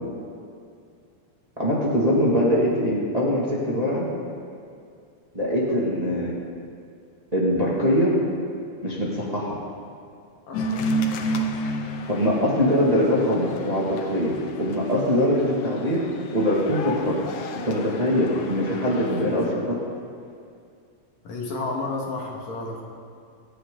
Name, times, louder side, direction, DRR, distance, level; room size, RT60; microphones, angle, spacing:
voice 1, 1.6-4.1 5.3-6.3 7.3-8.1 8.8-9.6 12.1-16.1 16.3-17.2 17.7-19.8, equal, 15° right, -5 dB, 1.6 m, -22 dB
sound 1, 10.5-19.5, equal, 90° left, 2.4 m, -32 dB
voice 2, 10.5-10.9 18.2-18.4 21.2-22.8, left 3 dB, 70° left, -1 dB, 3.0 m, -31 dB
24.5 x 9.4 x 3.8 m, 2.3 s
omnidirectional pair, 3.4 m